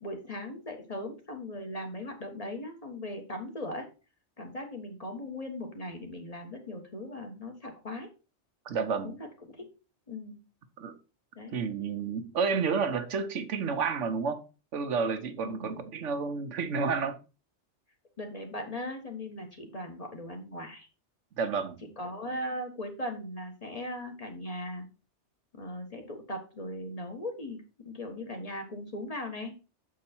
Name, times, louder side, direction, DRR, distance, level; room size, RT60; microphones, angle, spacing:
voice 1, 0.0-3.9 4.4-8.1 9.0-9.2 9.5-9.7 10.1-10.4 11.3-11.6 15.4-15.9 18.2-20.9 22.0-24.9 25.5-29.5, left 1 dB, 30° left, 1.6 m, -39 dB
voice 2, 8.6-9.2 10.8-11.0 11.5-14.4 14.7-17.2 21.4-21.8, right 5 dB, 90° right, 1.2 m, -30 dB
7.4 x 4.6 x 4.4 m
omnidirectional pair, 1.2 m